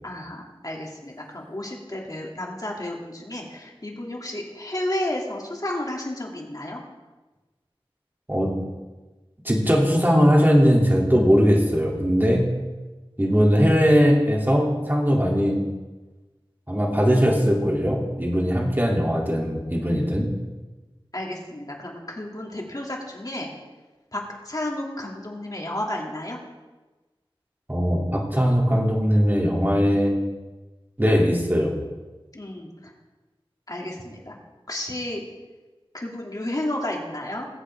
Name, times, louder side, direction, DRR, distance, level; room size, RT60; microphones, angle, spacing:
voice 1, 0.0-6.8 21.1-23.5 24.1-26.4 32.3-32.7 33.7-34.4 34.7-35.2 35.9-37.5, left 1 dB, 40° left, -1 dB, 2.9 m, -32 dB
voice 2, 9.4-12.4 13.2-15.6 16.7-20.3 27.7-30.1 31.0-31.7, equal, 20° right, -2 dB, 3.1 m, -20 dB
20.5 x 8.1 x 3.7 m, 1.2 s
wide cardioid pair, 40°, 10 cm